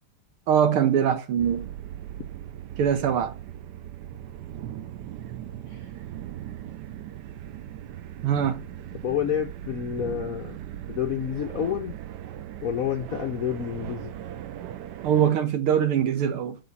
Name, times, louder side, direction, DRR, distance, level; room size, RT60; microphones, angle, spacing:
voice 1, 0.5-1.7 2.8-3.3 8.2-8.6 15.0-16.6, right 8 dB, 90° right, 2.0 m, -22 dB
sound 1, 1.4-15.3, right 11 dB, 70° right, 1.1 m, -39 dB
voice 2, 9.0-10.6 10.9-11.9 12.6-14.1, left 9 dB, 70° left, 0.8 m, -29 dB
6.4 x 5.7 x 4.1 m
omnidirectional pair, 2.3 m